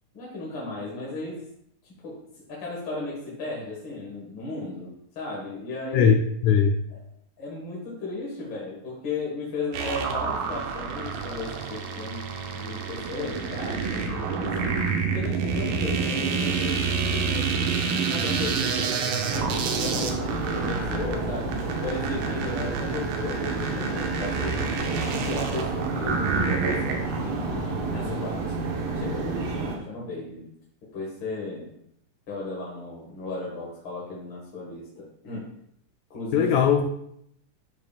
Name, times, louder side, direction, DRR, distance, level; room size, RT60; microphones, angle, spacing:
voice 1, 0.1-1.4 2.0-2.2 2.5-6.1 6.9-7.0 7.4-12.2 12.5-14.8 15.1-17.7 18.1-24.8 25.1-28.6 28.9-30.4 30.9-31.7 32.3-35.5 36.1-36.5, left 3 dB, 45° left, -5 dB, 1.9 m, -35 dB
voice 2, 5.9-6.8 36.3-36.9, left 7 dB, 85° left, 4 dB, 1.7 m, -20 dB
sound 1, 9.7-27.2, right 5 dB, 80° right, 2.6 m, -28 dB
sound 2, 19.3-29.8, right 3 dB, 60° right, 2.0 m, -30 dB
12.0 x 5.3 x 2.4 m, 0.73 s
omnidirectional pair, 3.9 m